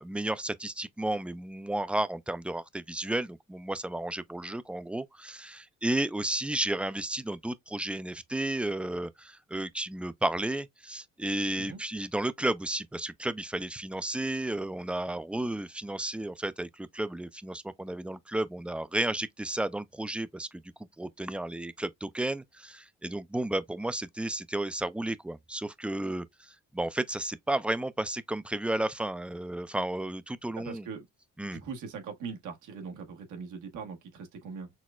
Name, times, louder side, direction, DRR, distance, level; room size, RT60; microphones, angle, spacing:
voice 1, 0.0-20.6 21.0-30.9 31.4-31.6, right 1 dB, 5° right, 0.3 m, -33 dB
voice 2, 30.6-31.0 31.4-34.7, right 5 dB, 85° right, 1.3 m, -41 dB
6.0 x 2.1 x 2.3 m
cardioid pair, 90°, 30 cm